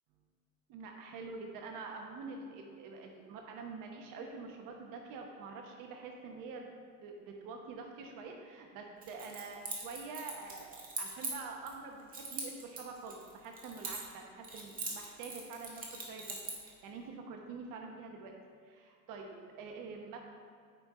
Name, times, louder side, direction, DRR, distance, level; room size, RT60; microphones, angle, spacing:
voice 1, 0.7-6.7 7.0-18.3 18.6-20.2, right 4 dB, 40° right, 2 dB, 1.1 m, -46 dB
Keys jangling, 9.0-11.7 12.1-14.2 14.4-16.7, right 3 dB, 15° right, 1.6 m, -42 dB
8.7 x 5.3 x 4.3 m, 2.2 s
hypercardioid pair, 115°, 50 cm